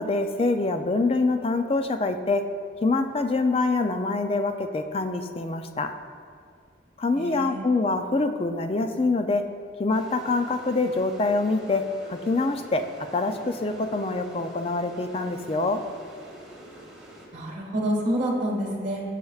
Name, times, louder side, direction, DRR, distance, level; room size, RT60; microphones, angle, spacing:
voice 1, 0.0-2.5 2.8-6.0 7.0-9.5 9.8-15.8, left 3 dB, 30° left, 7 dB, 0.4 m, -25 dB
voice 2, 7.1-7.7 17.3-19.0, right 1 dB, 40° right, -3 dB, 1.8 m, -28 dB
sound 1, 9.9-17.3, right 1 dB, 5° right, 1.5 m, -46 dB
15.0 x 6.6 x 2.4 m, 2.2 s
head